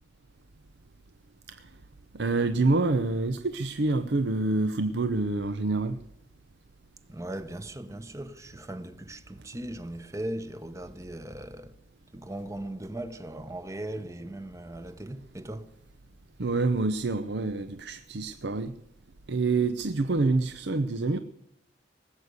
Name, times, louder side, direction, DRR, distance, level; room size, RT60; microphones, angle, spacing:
voice 1, 2.1-6.0 16.4-18.7 19.3-21.2, right 3 dB, 70° right, 0.7 m, -27 dB
voice 2, 7.1-11.7 12.1-15.7, right 1 dB, 15° right, 0.9 m, -38 dB
19.0 x 8.2 x 8.1 m
head